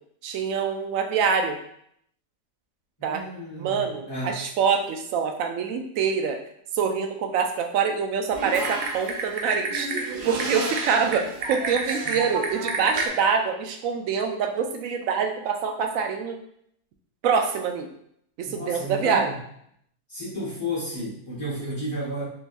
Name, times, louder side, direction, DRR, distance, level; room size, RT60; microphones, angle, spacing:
voice 1, 0.2-1.6 3.0-3.2 3.6-6.4 6.7-16.4 17.2-17.9 18.4-19.3, right 6 dB, 80° right, 4 dB, 1.0 m, -25 dB
voice 2, 3.0-4.4 12.0-12.2 18.5-19.4 20.1-22.2, equal, 20° left, -9 dB, 0.9 m, -32 dB
Typing, 8.3-13.1, right 3 dB, 60° right, 0.5 m, -30 dB
3.7 x 2.9 x 2.5 m, 0.69 s
omnidirectional pair, 1.4 m